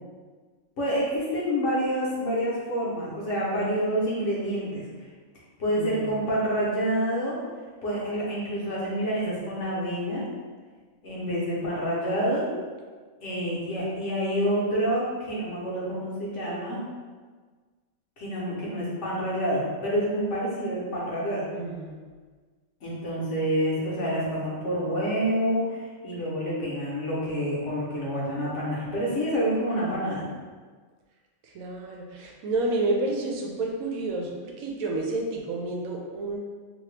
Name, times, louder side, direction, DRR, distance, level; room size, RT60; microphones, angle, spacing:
voice 1, 0.8-4.8 5.6-7.4 7.8-10.3 11.0-12.5 13.2-16.8 18.2-21.4 22.8-30.2, equal, 60° left, -6 dB, 1.2 m, -28 dB
voice 2, 5.7-6.1 13.5-13.9 21.5-22.0 31.4-36.4, right 2 dB, 80° right, 0 dB, 1.0 m, -30 dB
2.9 x 2.8 x 3.2 m, 1.5 s
omnidirectional pair, 1.4 m